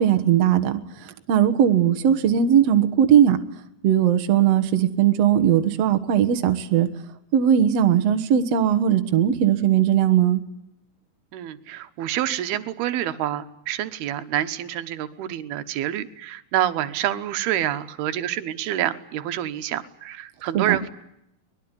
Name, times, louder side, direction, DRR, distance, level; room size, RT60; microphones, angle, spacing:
voice 1, 0.0-3.4 3.8-6.9 7.3-10.4 20.5-20.8, right 9 dB, 55° right, 7 dB, 2.1 m, -19 dB
voice 2, 11.3-20.9, right 12 dB, 85° right, 10 dB, 3.1 m, -27 dB
24.0 x 20.5 x 9.9 m, 0.80 s
omnidirectional pair, 4.4 m